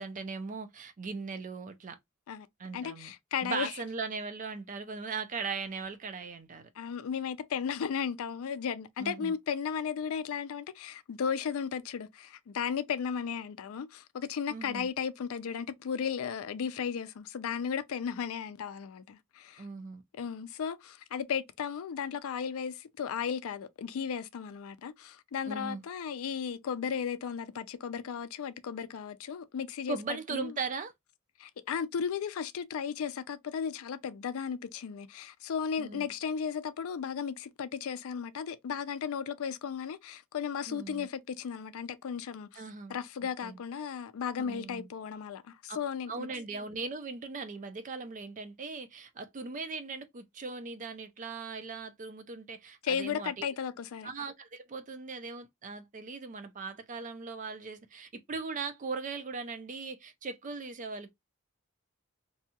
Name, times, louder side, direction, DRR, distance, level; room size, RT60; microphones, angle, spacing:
voice 1, 0.0-2.0 2.6-3.1 3.4-6.7 9.0-9.3 14.5-14.9 19.6-20.0 25.5-25.8 29.9-30.9 35.8-36.1 40.7-41.1 42.5-43.0 43.4-43.6 44.4-44.9 45.7-45.8 46.1-53.5 54.0-61.1, right 4 dB, 35° right, 0.4 m, -39 dB
voice 2, 2.7-3.7 6.8-19.6 20.2-30.0 30.3-30.5 31.4-42.6 42.9-46.3 52.8-54.1, left 7 dB, 70° left, 0.4 m, -35 dB
2.7 x 2.3 x 2.7 m
head